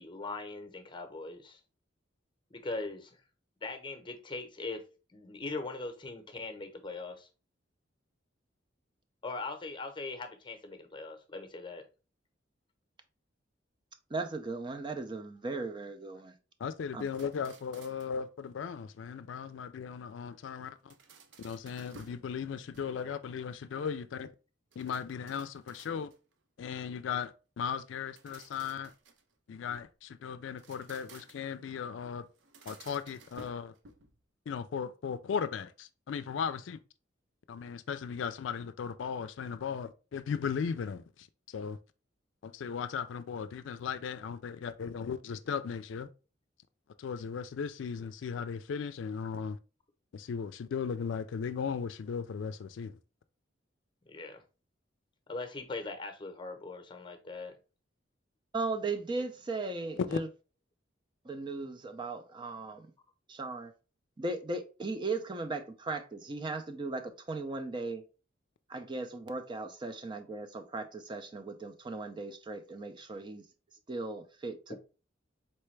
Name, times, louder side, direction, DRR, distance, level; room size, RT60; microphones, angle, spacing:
voice 1, 0.0-1.6 2.5-3.2 3.6-4.8 5.1-7.3 9.2-11.9 54.1-54.4 55.3-57.5 74.7-74.8, left 3 dB, 25° left, 0.8 m, -40 dB
voice 2, 14.1-16.3 16.9-17.1 58.5-60.3 61.2-62.9 63.3-63.7 64.2-68.0 68.7-73.4 73.9-74.8, right 3 dB, 25° right, 0.5 m, -37 dB
voice 3, 16.6-20.9 21.4-24.3 24.8-26.1 26.6-28.9 29.5-32.3 32.7-33.7 34.5-36.8 37.5-41.0 41.5-41.8 42.4-46.1 47.0-49.6 50.1-52.9 60.1-60.2, left 6 dB, 75° left, 0.4 m, -37 dB
sound 1, 17.0-18.2 20.6-22.3 22.6-23.2 24.7-26.3 27.9-30.0 30.5-31.6 32.4-34.2, right 3 dB, 75° right, 0.6 m, -56 dB
4.3 x 3.3 x 3.2 m
head